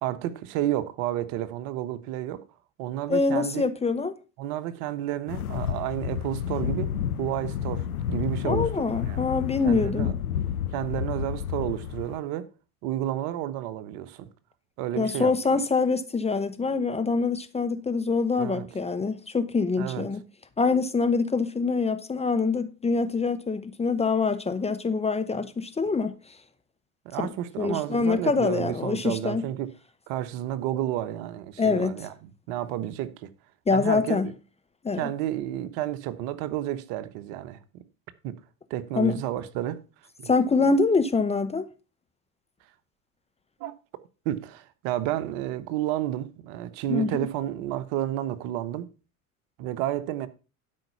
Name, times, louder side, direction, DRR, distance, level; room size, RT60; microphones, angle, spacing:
voice 1, 0.0-2.4 2.8-3.6 4.4-6.9 7.2-9.2 9.6-10.1 10.7-12.5 12.8-14.3 14.8-15.6 18.4-18.7 19.8-20.1 27.0-29.7 30.1-33.3 33.7-34.2 35.0-37.6 38.2-38.4 38.7-39.8 40.2-40.3 43.6-43.7 44.2-48.9 49.6-50.3, right 12 dB, 55° right, 1.2 m, -31 dB
voice 2, 3.1-4.1 8.4-10.1 14.9-20.2 20.6-26.1 27.6-29.5 31.6-31.9 33.7-34.3 34.8-35.1 38.9-39.2 40.3-41.6 46.9-47.1, left 4 dB, 15° left, 0.8 m, -25 dB
sound 1, 5.3-12.2, left 9 dB, 85° left, 0.8 m, -30 dB
12.0 x 5.5 x 5.8 m
figure-of-eight pair, 70°, 43 cm